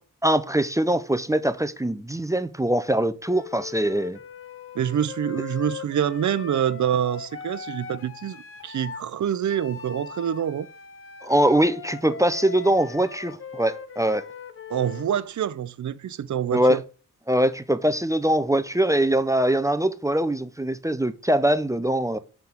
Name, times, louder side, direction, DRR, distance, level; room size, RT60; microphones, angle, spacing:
voice 1, 0.2-4.2 11.2-14.2 16.5-16.8 17.3-22.2, right 1 dB, 10° right, 0.4 m, -22 dB
Wind instrument woodwind instrument, 3.2-9.1 9.5-15.1, left 6 dB, 40° left, 0.6 m, -40 dB
voice 2, 4.7-10.7 14.7-16.8, right 9 dB, 60° right, 0.5 m, -26 dB
5.8 x 5.8 x 3.6 m
wide cardioid pair, 110°, 33 cm